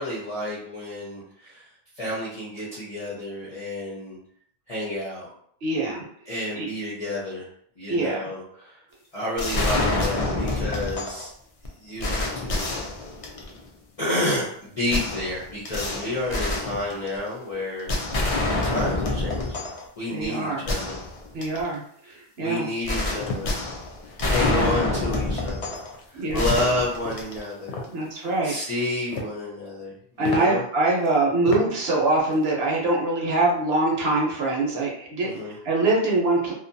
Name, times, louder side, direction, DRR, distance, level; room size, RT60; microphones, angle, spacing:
voice 1, 0.0-1.7 1.9-4.2 4.7-5.3 6.3-7.5 7.8-8.8 9.1-11.3 11.8-12.8 14.0-17.9 18.6-19.6 20.0-21.0 22.0-23.5 24.2-25.8 26.1-27.8 28.4-30.6 35.2-35.5, left 1 dB, 40° left, -7 dB, 0.6 m, -30 dB
voice 2, 5.6-6.0 6.6-6.7 7.9-8.3 20.1-20.6 21.3-22.7 24.4-24.8 26.1-26.4 27.9-28.5 30.2-35.3 35.6-36.5, right 2 dB, 65° right, -2 dB, 0.8 m, -24 dB
sound 1, 9.4-11.3 11.6-11.7 12.0-13.6 14.9-17.3 17.9-19.9 20.2-20.3 20.7-21.7 22.9-25.9 26.3-27.6, left 2 dB, 70° left, 0.3 m, -27 dB
sound 2, 23.2-23.5 24.0-24.2 24.4-24.7 25.1-25.4 25.7-26.1 26.5-26.7 27.0-27.9 28.8-29.4 29.8-29.9 30.2-30.4 31.0-31.1 31.5-31.6 32.0-32.4, left 3 dB, 85° left, 0.9 m, -33 dB
2.6 x 2.2 x 2.6 m, 0.65 s
omnidirectional pair, 1.2 m